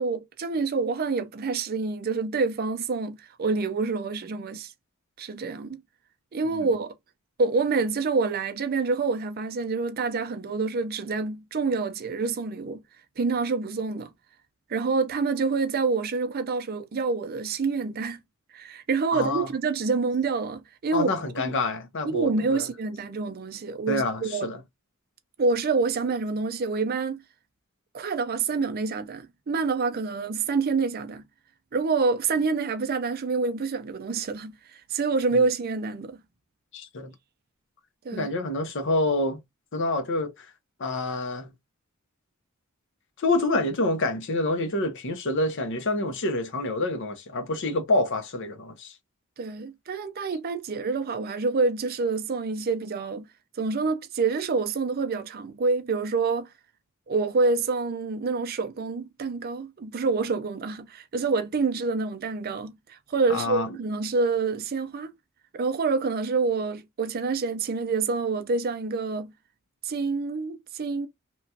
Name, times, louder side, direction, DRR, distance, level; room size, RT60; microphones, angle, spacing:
voice 1, 0.0-4.7 5.2-5.8 6.3-6.9 7.4-12.8 13.2-14.1 14.7-18.2 18.5-21.1 21.4-21.5 22.0-24.5 25.4-27.2 27.9-31.2 31.7-36.2 38.0-38.3 49.4-53.2 53.6-56.5 57.1-65.1 65.5-69.3 69.8-71.1, right 4 dB, 45° right, 0.4 m, -27 dB
voice 2, 19.1-19.5 20.9-22.6 23.9-24.6 36.7-37.1 38.1-39.4 39.7-40.3 40.8-41.5 43.2-48.9 63.3-63.7, left 2 dB, 55° left, 0.6 m, -27 dB
2.9 x 2.2 x 2.7 m
head